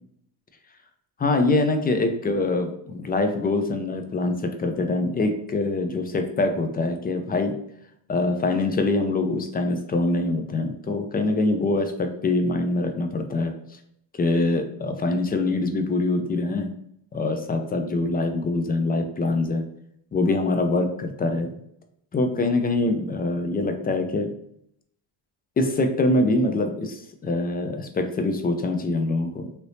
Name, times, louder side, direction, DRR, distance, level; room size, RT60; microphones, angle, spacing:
voice 1, 1.2-7.5 8.1-13.5 14.1-16.7 17.1-19.6 20.1-21.5 22.1-24.3 25.6-29.5, left 2 dB, 25° left, 6 dB, 0.3 m, -24 dB
2.8 x 2.6 x 3.2 m, 0.72 s
cardioid pair, 115°, 43 cm